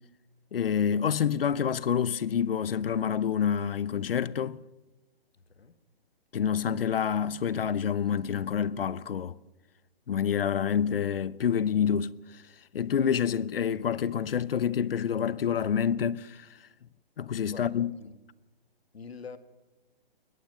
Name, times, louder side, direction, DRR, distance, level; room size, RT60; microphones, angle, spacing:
voice 1, 0.5-4.6 6.3-9.3 10.1-12.4 12.7-16.5 17.2-18.0, left 8 dB, 65° left, 0.9 m, -27 dB
voice 2, 17.5-18.1 18.9-19.4, left 5 dB, 80° left, 1.8 m, -45 dB
21.5 x 20.0 x 6.5 m
hypercardioid pair, 145°, 30 cm